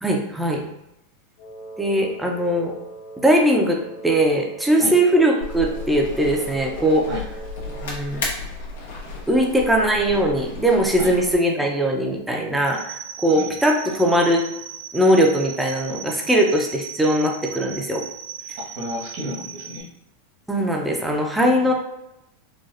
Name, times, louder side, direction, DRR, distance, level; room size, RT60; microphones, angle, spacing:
voice 1, 0.0-0.6 1.8-2.7 3.2-7.1 7.7-8.3 9.3-14.4 14.9-18.0 20.5-21.7, right 1 dB, 5° right, 0 dB, 0.5 m, -20 dB
Wind instrument woodwind instrument, 1.4-8.1, right 3 dB, 65° left, 1.2 m, -40 dB
sound 1, 5.4-11.4, left 2 dB, 85° left, 1.0 m, -33 dB
sound 2, 12.7-19.8, right 8 dB, 85° right, 0.5 m, -37 dB
voice 2, 18.7-19.9 21.5-21.7, left 1 dB, 65° right, -3 dB, 1.4 m, -32 dB
4.0 x 2.3 x 2.5 m, 0.84 s
supercardioid pair, 125°, 0 cm